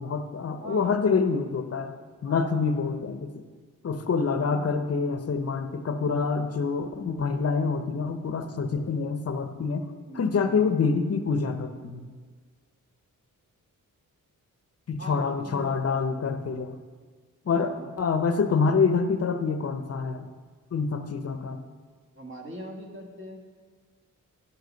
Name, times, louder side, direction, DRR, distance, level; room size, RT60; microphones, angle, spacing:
voice 1, 0.0-1.9 2.2-3.3 3.8-9.9 10.1-12.1 14.9-16.7 17.5-17.7 18.0-20.3 20.7-21.6, left 5 dB, 45° left, 8 dB, 0.7 m, -26 dB
voice 2, 0.6-1.0 2.2-2.8 4.3-4.6 10.1-10.8 15.0-15.8 17.4-17.9 22.1-23.4, right 1 dB, 35° right, 0 dB, 1.6 m, -41 dB
10.5 x 6.6 x 6.4 m, 1.5 s
wide cardioid pair, 155°, 33 cm